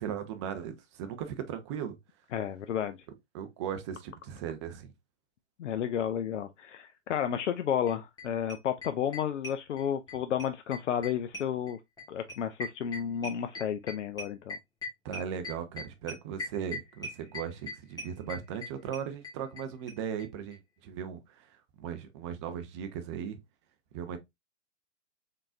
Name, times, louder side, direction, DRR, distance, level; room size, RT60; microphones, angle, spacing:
voice 1, 0.0-2.0 3.3-4.9 15.0-23.4 23.9-24.2, right 8 dB, 25° right, 0.5 m, -38 dB
voice 2, 2.3-3.0 5.6-11.8 12.1-14.6, left 9 dB, 75° left, 0.5 m, -32 dB
sound 1, 7.9-8.0 8.2-8.3 8.5-10.1 10.4-19.6 19.9-20.0 20.2-20.3 20.5-20.6, left 2 dB, 10° left, 1.2 m, -40 dB
3.8 x 3.7 x 2.4 m
hypercardioid pair, 130°, 36 cm